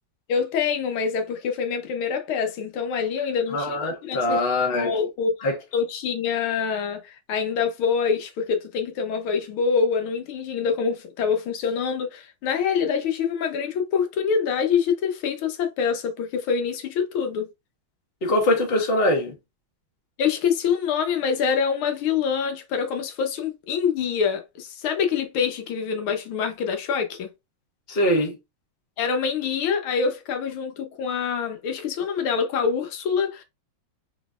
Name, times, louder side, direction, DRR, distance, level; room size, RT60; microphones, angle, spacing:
voice 1, 0.3-3.8 4.0-4.4 4.7-5.3 5.7-17.5 20.2-27.3 29.0-33.4, left 6 dB, 85° left, 1.7 m, -25 dB
voice 2, 3.5-4.9 5.4-5.5 18.2-19.3 27.9-28.4, left 1 dB, 35° left, 1.2 m, -22 dB
4.1 x 3.8 x 2.3 m
omnidirectional pair, 2.2 m